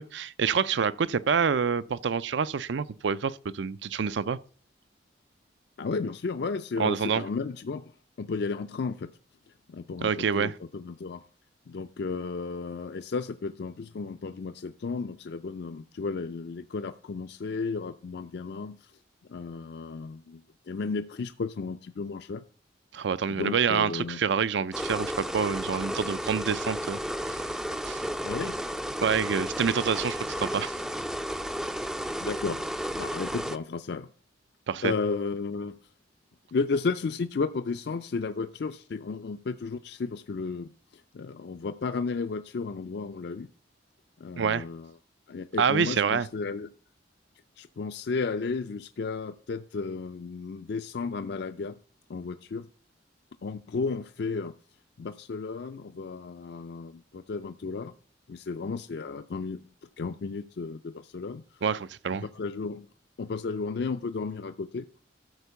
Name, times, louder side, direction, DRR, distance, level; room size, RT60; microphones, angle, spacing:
voice 1, 0.0-4.4 6.8-7.2 10.0-10.5 22.9-27.0 27.3-27.5 27.8-28.0 29.0-30.8 34.7-34.9 44.4-44.6 45.6-46.3 61.6-62.2, right 6 dB, 70° right, 0.5 m, -27 dB
voice 2, 5.8-7.9 8.2-9.1 9.7-11.2 11.7-18.9 19.3-22.4 23.3-24.2 28.2-28.5 32.2-32.6 32.9-34.1 34.8-35.7 36.5-43.5 44.2-44.9 45.3-46.7 47.6-51.8 52.1-52.7 53.4-54.5 55.0-57.9 58.3-59.6 60.0-61.6 62.2-62.9 63.2-64.9, left 4 dB, 60° left, 0.4 m, -33 dB
sound 1, 24.7-33.6, equal, 5° right, 0.3 m, -33 dB
13.0 x 4.5 x 6.8 m
head